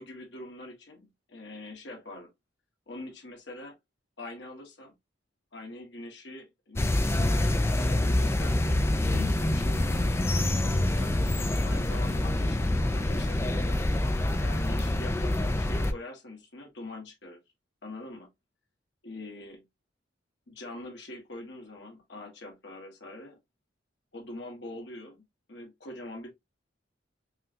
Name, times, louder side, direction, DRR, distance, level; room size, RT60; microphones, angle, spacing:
voice 1, 0.0-2.3 2.9-3.8 4.2-4.9 5.5-10.2 10.6-11.2 11.6-13.8 14.4-17.4 17.8-18.3 19.0-19.6 20.5-23.4 24.1-25.2 25.5-26.3, left 2 dB, 65° left, 1.3 m, -43 dB
sound 1, 6.8-15.9, left 1 dB, 15° left, 0.3 m, -26 dB
5.5 x 2.3 x 2.6 m
head